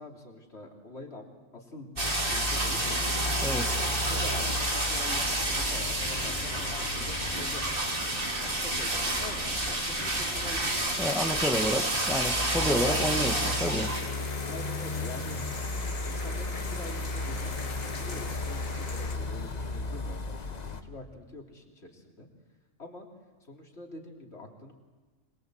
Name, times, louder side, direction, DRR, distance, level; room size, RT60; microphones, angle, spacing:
voice 1, 0.0-1.9 2.2-3.0 3.5-7.7 8.4-10.9 12.6-13.4 14.5-15.4 15.8-22.3 22.8-23.1 23.4-24.7, left 2 dB, 55° left, 0 dB, 3.7 m, -45 dB
sound 1, 2.0-20.8, left 3 dB, 35° left, 1.2 m, -36 dB
sound 2, 2.0-14.1 14.4-14.5, right 2 dB, 40° right, 2.8 m, -30 dB
sound 3, 4.6-19.1, left 3 dB, 80° left, 2.7 m, -42 dB
voice 2, 11.0-13.9, equal, ahead, 3 dB, 1.5 m, -29 dB
26.0 x 21.5 x 8.0 m, 1.3 s
omnidirectional pair, 1.4 m